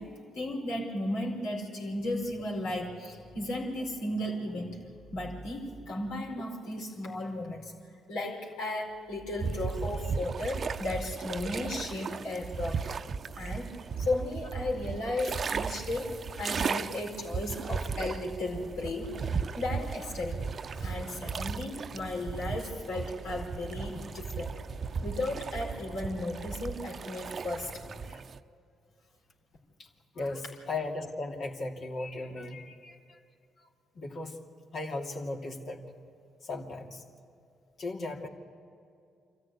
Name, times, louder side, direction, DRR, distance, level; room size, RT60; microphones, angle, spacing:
voice 1, 0.0-7.7 8.1-12.8 13.4-20.4 20.7-24.5 25.0-27.8, left 1 dB, 80° left, -1 dB, 4.7 m, -35 dB
sound 1, 9.4-28.4, right 5 dB, 50° right, 0.7 m, -36 dB
voice 2, 30.1-33.2 33.6-33.7 33.9-34.4 34.7-35.8 36.4-37.0 37.8-38.3, left 2 dB, 60° left, 1 dB, 2.7 m, -37 dB
25.5 x 14.5 x 9.5 m, 2.4 s
hypercardioid pair, 50°, 0 cm